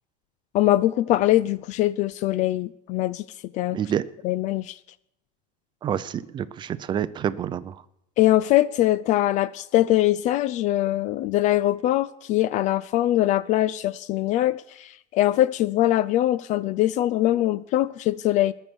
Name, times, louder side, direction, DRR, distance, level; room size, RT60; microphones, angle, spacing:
voice 1, 0.5-3.2 3.5-3.8 4.2-4.8 8.2-18.5, left 14 dB, 35° left, 0.4 m, -22 dB
voice 2, 3.7-4.0 5.8-7.8, right 9 dB, 20° right, 0.5 m, -28 dB
20.0 x 6.9 x 6.2 m
supercardioid pair, 150°, 21 cm